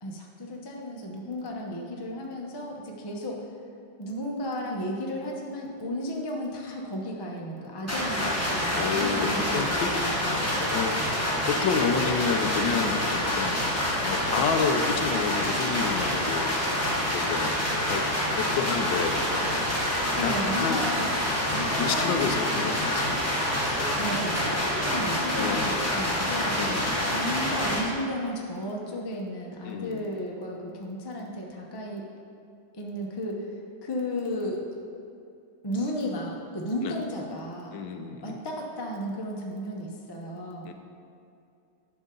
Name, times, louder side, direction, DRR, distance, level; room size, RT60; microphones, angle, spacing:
voice 1, 0.0-3.5 4.0-10.5 20.2-21.1 21.5-22.5 23.6-26.6 27.1-32.1 32.7-34.6 35.6-37.7 38.2-40.7, equal, 30° left, -1 dB, 0.4 m, -34 dB
sound 1, 7.9-27.8, left 1 dB, 10° left, 1.0 m, -27 dB
voice 2, 8.8-10.0 10.6-11.0 11.4-13.7 14.0-16.5 17.1-18.1 18.4-19.2 20.2-20.8 21.8-23.1 25.4-25.7 26.6-27.0 29.6-30.0 36.8-36.9 37.7-38.4 40.7-40.8, left 6 dB, 75° left, 5 dB, 1.3 m, -29 dB
11.0 x 6.7 x 3.8 m, 2.5 s
omnidirectional pair, 2.2 m